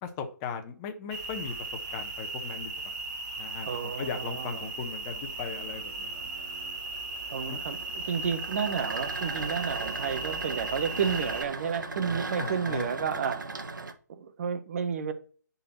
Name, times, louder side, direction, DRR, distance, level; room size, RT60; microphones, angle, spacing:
voice 1, 0.0-2.9 3.4-6.3 7.5-7.6 12.4-12.9 13.1-13.3, left 6 dB, 20° left, 1.3 m, -38 dB
sound 1, 1.1-11.4, right 3 dB, 25° right, 2.0 m, -37 dB
voice 2, 3.7-4.7 7.3-7.8 8.1-13.4 14.1-15.1, right 6 dB, 45° right, 1.2 m, -31 dB
sound 2, 4.6-13.9, right 3 dB, 70° right, 1.4 m, -39 dB
10.0 x 4.2 x 4.4 m
figure-of-eight pair, 145°, 11 cm